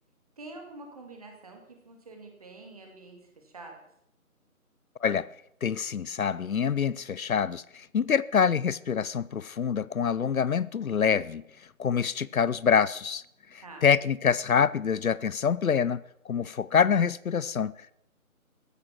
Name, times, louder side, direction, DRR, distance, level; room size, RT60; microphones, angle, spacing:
voice 1, 0.4-3.7 13.6-13.9, right 2 dB, 25° right, 2.4 m, -46 dB
voice 2, 5.6-11.4 11.8-13.2 13.5-17.9, left 7 dB, 70° left, 0.7 m, -26 dB
15.0 x 11.5 x 6.0 m
figure-of-eight pair, 170°, 43 cm